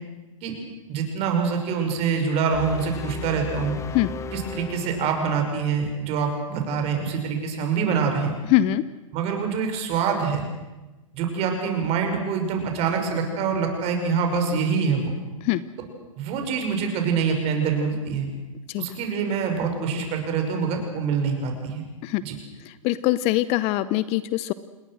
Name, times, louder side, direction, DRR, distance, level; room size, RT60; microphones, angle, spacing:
voice 1, 0.9-3.8 4.3-8.4 9.1-10.4 11.1-15.1 16.2-18.3 18.8-21.8 22.2-22.3, right 5 dB, 35° right, 4 dB, 6.0 m, -25 dB
sound 1, 2.5-5.7, left 6 dB, 15° left, 1.2 m, -36 dB
voice 2, 8.5-8.8 15.4-15.6 18.7-18.8 22.0-22.2 22.7-24.5, left 15 dB, 35° left, 16 dB, 0.8 m, -22 dB
28.5 x 20.5 x 6.4 m, 1.1 s
hypercardioid pair, 115°, 17 cm